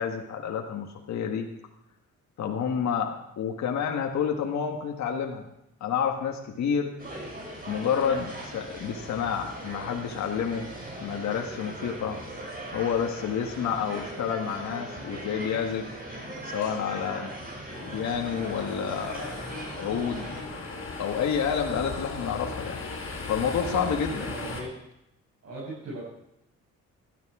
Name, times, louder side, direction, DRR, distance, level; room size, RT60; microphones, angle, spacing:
voice 1, 0.0-1.5 2.4-5.5 5.8-6.9 7.7-10.7 11.0-12.2 12.7-15.9 16.3-17.3 17.8-19.5 19.8-20.3 21.0-22.8 23.3-24.3, left 7 dB, 65° left, 2 dB, 1.7 m, -29 dB
sound 1, 7.0-20.4, right 1 dB, 30° right, 6.1 m, -39 dB
sound 2, 17.7-24.6, left 3 dB, 45° left, 4.5 m, -37 dB
voice 2, 23.6-23.9 24.2-24.7 25.4-26.0, right 2 dB, 50° right, -8 dB, 7.6 m, -37 dB
16.5 x 13.0 x 4.9 m, 0.84 s
cardioid pair, 90°, 30 cm